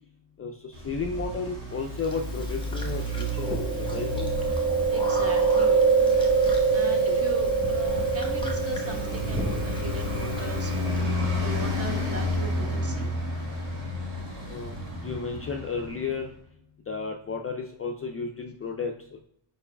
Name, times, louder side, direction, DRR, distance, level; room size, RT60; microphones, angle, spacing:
voice 1, 0.4-4.3 7.1-7.2 14.5-14.8 15.0-16.3 16.9-18.9, left 4 dB, 30° left, 2 dB, 0.4 m, -33 dB
Traffic noise roadway noise, 0.7-16.2, left 1 dB, 85° right, 1.5 m, -32 dB
Chewing mastication, 2.0-11.0, right 4 dB, 10° left, 1.0 m, -25 dB
voice 2, 2.9-3.2 4.5-5.9 6.7-13.1, right 2 dB, 30° right, 3 dB, 0.9 m, -39 dB
4.8 x 4.6 x 2.2 m, 0.73 s
cardioid pair, 70°, 50 cm